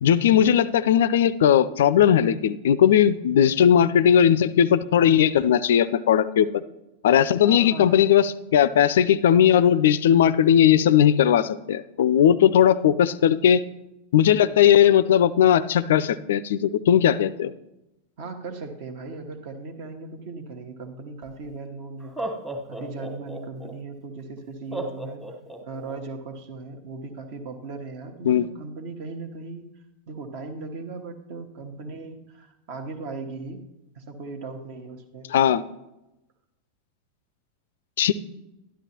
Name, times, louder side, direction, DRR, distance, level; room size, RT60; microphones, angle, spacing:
voice 1, 0.0-6.6 7.0-13.6 14.1-17.5 28.2-28.4 35.3-35.6 38.0-38.1, left 9 dB, 60° left, 17 dB, 0.3 m, -18 dB
voice 2, 7.4-8.1 18.2-22.2 22.7-25.2 25.6-29.7 30.1-33.6 33.9-35.3, right 3 dB, 50° right, 7 dB, 1.2 m, -37 dB
Laughter, 21.3-21.4 22.0-23.7 24.7-25.9, right 2 dB, 10° right, 1.3 m, -34 dB
12.5 x 11.5 x 2.9 m, 0.94 s
figure-of-eight pair, 90°, 0 cm